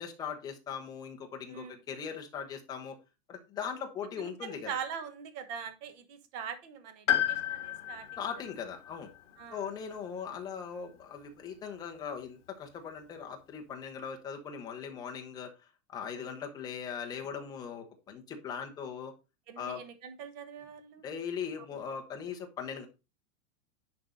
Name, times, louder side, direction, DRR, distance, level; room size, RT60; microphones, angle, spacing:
voice 1, 0.0-3.0 3.3-4.7 8.2-9.1 9.5-15.5 15.9-19.1 19.6-19.8 21.0-22.9, left 7 dB, 10° left, 3 dB, 0.8 m, -39 dB
voice 2, 1.5-1.8 4.2-8.2 9.4-9.7 16.1-16.4 19.5-21.0, right 7 dB, 30° right, 10 dB, 1.2 m, -42 dB
Piano, 7.1-11.2 12.5-12.6, left 11 dB, 55° left, 1.8 m, -34 dB
10.5 x 4.6 x 3.9 m, 0.28 s
supercardioid pair, 180°, 42 cm